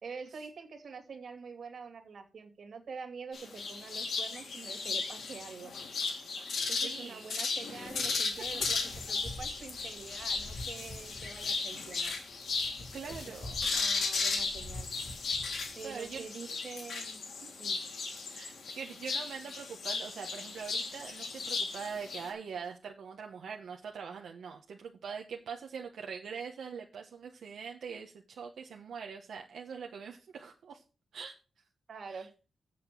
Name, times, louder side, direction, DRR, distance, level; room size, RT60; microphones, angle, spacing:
voice 1, 0.0-5.7 6.7-8.8 9.1-12.2 13.1-14.9 15.7-17.2 17.6-17.8 31.9-32.3, right 5 dB, 50° right, 4 dB, 2.4 m, -46 dB
sound 1, 3.3-22.3, left 4 dB, 70° left, 2.9 m, -36 dB
voice 2, 6.7-7.3 7.7-7.9 12.9-13.6 15.8-16.3 17.4-17.5 18.3-30.8 31.1-31.4 32.1-32.3, right 6 dB, 75° right, 2 dB, 1.2 m, -43 dB
sound 2, 7.8-16.2, left 2 dB, 50° left, 1.8 m, -47 dB
8.0 x 6.8 x 6.8 m, 0.34 s
wide cardioid pair, 180°, 0 cm